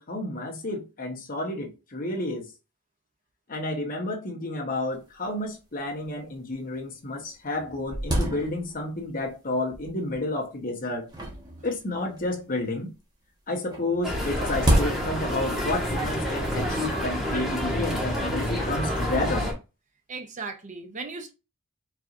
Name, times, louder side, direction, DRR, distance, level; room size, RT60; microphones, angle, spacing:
voice 1, 0.0-2.5 3.5-11.1 11.6-12.9 13.5-19.5, left 2 dB, 40° left, 1.0 m, -31 dB
sound 1, 4.9-5.0 5.2-5.3 6.0-6.1 6.7-6.8 7.2-9.0 9.7-10.2 11.1-12.4 13.7-15.5, equal, 20° right, 1.1 m, -28 dB
sound 2, 14.0-19.5, equal, ahead, 1.5 m, -28 dB
voice 2, 20.1-21.3, right 4 dB, 35° right, 0.6 m, -36 dB
4.6 x 4.0 x 2.5 m
head